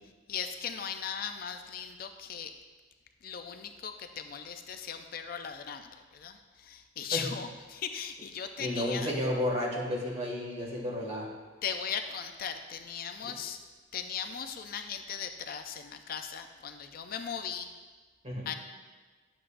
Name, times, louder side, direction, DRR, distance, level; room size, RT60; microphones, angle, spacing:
voice 1, 0.3-2.5 3.2-9.2 11.6-13.6 13.9-17.7 18.5-18.6, left 7 dB, 50° left, 7 dB, 0.4 m, -38 dB
voice 2, 8.6-11.4 13.2-13.3 18.2-18.5, left 1 dB, 35° right, -3 dB, 2.0 m, -32 dB
11.0 x 7.8 x 2.5 m, 1.4 s
head